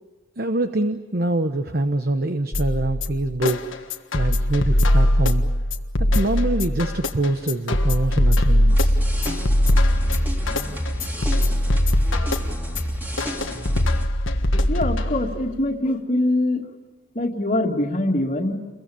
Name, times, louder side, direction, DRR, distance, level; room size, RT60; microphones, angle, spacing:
voice 1, 0.4-5.4 6.0-9.0, right 2 dB, 50° right, 8 dB, 1.1 m, -25 dB
sound 1, 2.5-15.5, left 1 dB, 70° left, 1.6 m, -21 dB
sound 2, 8.7-14.1, equal, 10° right, 3.0 m, -30 dB
voice 2, 14.7-16.6 17.1-18.5, left 1 dB, 35° left, -6 dB, 2.3 m, -23 dB
29.5 x 22.5 x 7.1 m, 1.2 s
head